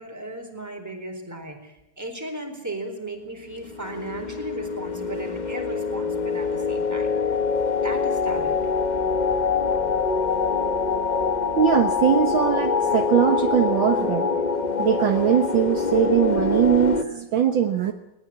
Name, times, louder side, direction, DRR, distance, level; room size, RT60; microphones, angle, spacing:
voice 1, 0.0-7.4 7.8-8.6, right 1 dB, 5° right, 3 dB, 4.1 m, -36 dB
sound 1, 3.6-17.0, left 5 dB, 35° left, 0.7 m, -24 dB
voice 2, 11.6-14.4 14.8-17.9, right 9 dB, 65° right, 6 dB, 1.9 m, -21 dB
20.0 x 19.5 x 8.7 m, 0.83 s
omnidirectional pair, 2.4 m